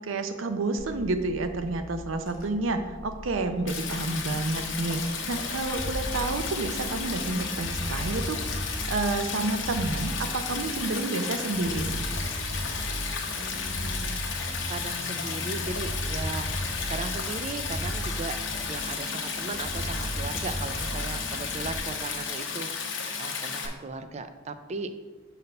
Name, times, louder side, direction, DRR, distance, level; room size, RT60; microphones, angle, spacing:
voice 1, 0.0-12.1, right 2 dB, 80° right, 8 dB, 0.6 m, -30 dB
Car / Engine, 0.8-7.4, left 1 dB, 40° left, 1.4 m, -43 dB
voice 2, 3.4-3.9 13.4-18.4 18.7-24.9, right 3 dB, 35° right, 9 dB, 0.4 m, -38 dB
Stream, 3.7-23.7, left 5 dB, 70° left, 0.9 m, -33 dB
sound 1, 5.8-21.8, equal, 20° left, 1.5 m, -36 dB
5.3 x 4.1 x 5.4 m, 1.3 s
head